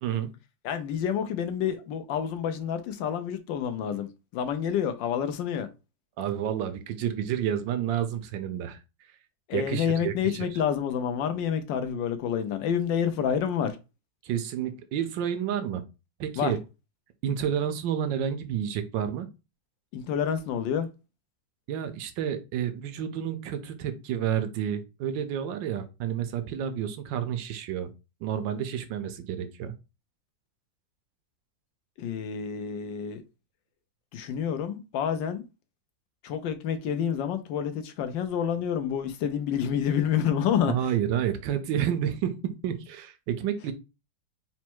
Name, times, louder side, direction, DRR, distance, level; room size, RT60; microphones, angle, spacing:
voice 1, 0.0-0.3 6.2-8.8 9.5-10.3 14.2-15.8 16.2-16.6 17.2-19.3 21.7-27.9 28.2-29.7 40.7-43.7, right 9 dB, 85° right, 1.3 m, -30 dB
voice 2, 0.6-5.7 9.5-13.8 16.4-16.5 19.9-20.9 32.0-33.2 34.1-35.4 36.2-40.9, left 8 dB, 85° left, 1.4 m, -28 dB
4.2 x 2.2 x 4.5 m
omnidirectional pair, 1.9 m